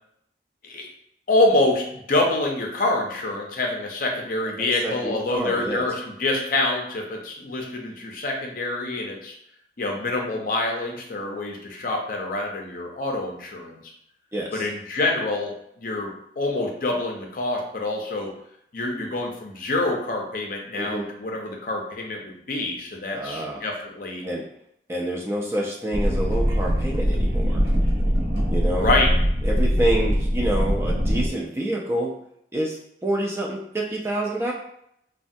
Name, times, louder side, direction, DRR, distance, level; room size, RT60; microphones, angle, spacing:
voice 1, 1.3-9.3 9.8-13.8 14.5-18.3 18.7-24.2 28.8-29.1, left 2 dB, 50° left, 1 dB, 0.5 m, -26 dB
voice 2, 4.6-5.9 14.3-14.7 20.7-21.1 23.1-23.6 24.2-24.5 24.9-27.6 28.5-28.9 29.4-32.1 32.5-34.5, right 1 dB, 15° right, -2 dB, 0.3 m, -27 dB
sound 1, 25.9-31.3, equal, 65° right, 0.6 m, -22 dB
3.2 x 2.2 x 2.6 m, 0.73 s
head